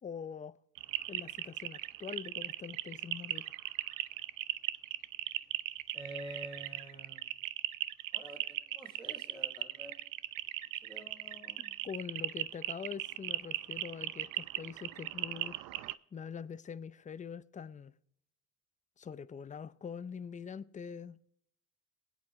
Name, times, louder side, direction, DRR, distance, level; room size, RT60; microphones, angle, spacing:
voice 1, 0.0-0.5 1.1-3.5 11.8-15.5 16.1-17.9 19.0-21.2, left 7 dB, 20° left, 0.6 m, -44 dB
sound 1, 0.8-15.9, right 16 dB, 60° right, 0.6 m, -38 dB
voice 2, 5.9-7.3 8.1-10.0 10.8-11.7, right 1 dB, 10° right, 3.0 m, -48 dB
22.0 x 8.3 x 3.2 m
supercardioid pair, 80°, 37 cm